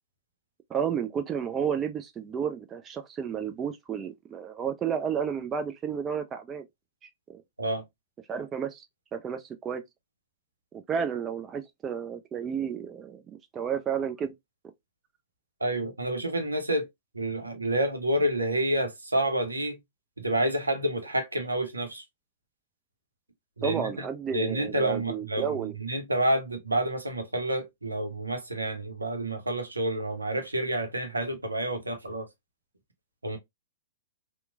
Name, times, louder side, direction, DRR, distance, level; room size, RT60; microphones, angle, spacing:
voice 1, 0.7-6.7 7.0-7.4 8.3-8.9 9.1-9.8 10.7-13.2 13.5-14.3 23.6-25.7, right 7 dB, 25° right, 0.4 m, -32 dB
voice 2, 15.6-16.8 17.1-19.8 20.2-22.0 23.6-23.9 24.3-32.3 33.2-33.4, right 1 dB, 90° right, 0.7 m, -29 dB
2.9 x 2.1 x 2.3 m
figure-of-eight pair, 110°, 0 cm